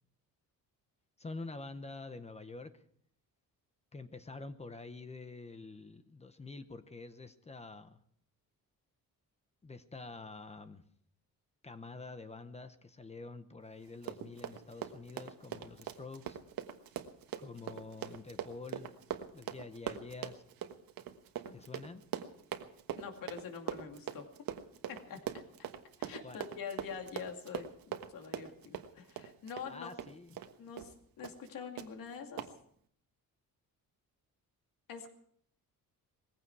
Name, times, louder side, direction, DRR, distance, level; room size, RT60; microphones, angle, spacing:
voice 1, 1.2-2.8 3.9-8.0 9.6-10.8 11.6-16.4 17.4-18.9 19.3-20.4 21.5-22.0 26.2-26.4 29.7-30.4, left 3 dB, 20° left, 10 dB, 0.8 m, -47 dB
Run, 13.9-30.5 30.8-30.9 31.2-31.5 31.8-31.9 32.4-32.5, right 10 dB, 75° right, 1.3 m, -42 dB
voice 2, 23.0-24.3 24.9-25.2 26.0-27.7 28.1-30.0 30.6-32.5 34.9-35.1, left 6 dB, 65° left, 4 dB, 2.5 m, -45 dB
20.0 x 15.5 x 4.7 m, 0.64 s
cardioid pair, 160°, 36 cm